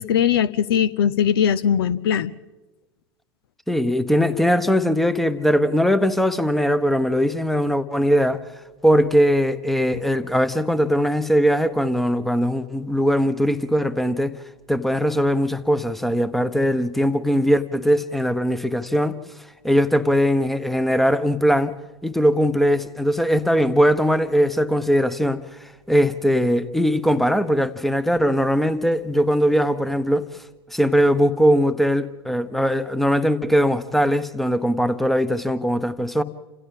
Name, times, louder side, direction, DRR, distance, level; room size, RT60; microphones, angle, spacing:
voice 1, 0.0-2.3, left 8 dB, 65° left, 0.7 m, -20 dB
voice 2, 3.7-8.4 8.8-14.3 14.7-19.2 19.6-21.7 22.0-30.3 30.7-36.2, equal, ahead, 1.1 m, -20 dB
29.0 x 27.0 x 3.8 m
figure-of-eight pair, 85°, 14 cm